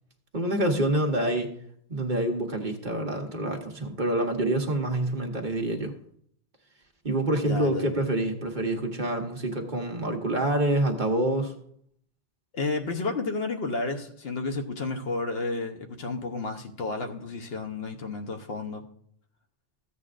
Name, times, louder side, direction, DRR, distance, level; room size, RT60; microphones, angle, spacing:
voice 1, 0.3-1.5 1.9-5.9 7.0-11.5, right 1 dB, 45° right, 1.3 m, -27 dB
voice 2, 7.4-7.9 12.5-18.9, left 3 dB, 65° left, 1.1 m, -31 dB
14.5 x 8.3 x 2.5 m
omnidirectional pair, 1.1 m